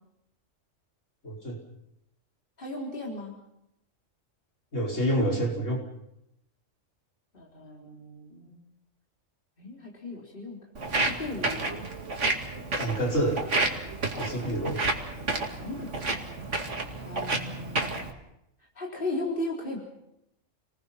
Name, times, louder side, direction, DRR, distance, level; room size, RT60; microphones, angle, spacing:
voice 1, 1.2-1.6 4.7-5.8 12.7-13.4 14.2-14.8, right 1 dB, 75° left, -1 dB, 5.6 m, -27 dB
voice 2, 2.6-3.3 7.3-8.6 9.6-10.6 10.9-11.8 14.1-14.7 15.6-16.1 17.0-18.0 18.7-19.8, left 2 dB, 45° left, -2 dB, 4.4 m, -36 dB
Walk footsteps, 10.8-18.1, right 2 dB, 65° right, 2.6 m, -30 dB
29.5 x 20.0 x 5.9 m, 0.83 s
omnidirectional pair, 1.3 m